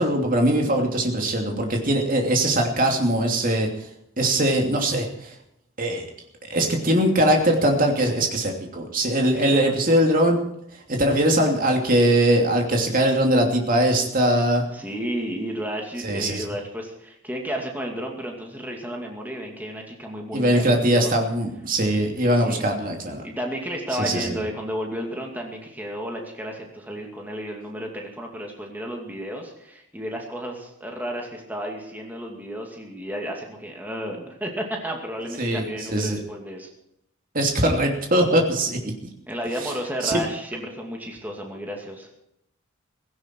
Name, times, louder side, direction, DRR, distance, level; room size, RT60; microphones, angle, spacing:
voice 1, 0.0-3.7 4.2-5.3 5.8-6.0 6.5-10.4 10.9-14.6 16.0-16.4 20.3-23.2 24.0-24.4 35.4-36.2 37.3-38.8 39.6-39.7 40.0-40.2, right 1 dB, 40° right, 2 dB, 2.9 m, -21 dB
voice 2, 9.3-9.8 14.7-21.2 22.2-22.7 23.2-36.7 39.3-42.1, equal, 10° right, 0 dB, 2.4 m, -32 dB
17.0 x 16.5 x 4.6 m, 0.80 s
head